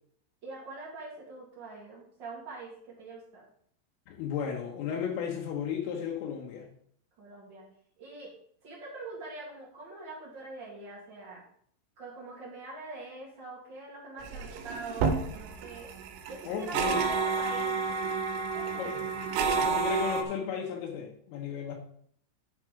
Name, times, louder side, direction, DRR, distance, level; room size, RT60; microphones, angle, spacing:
voice 1, 0.4-3.5 7.2-7.7 8.0-8.3 8.6-11.4 12.0-15.9 16.3-17.8 18.5-19.0, right 3 dB, 45° right, -4 dB, 1.5 m, -44 dB
voice 2, 4.1-6.7 16.5-17.0 18.8-18.9 19.6-21.8, left 7 dB, 85° left, 0 dB, 3.6 m, -34 dB
sound 1, 14.2-20.2, right 5 dB, 80° right, 3.3 m, -30 dB
11.0 x 4.8 x 4.9 m, 0.64 s
omnidirectional pair, 5.7 m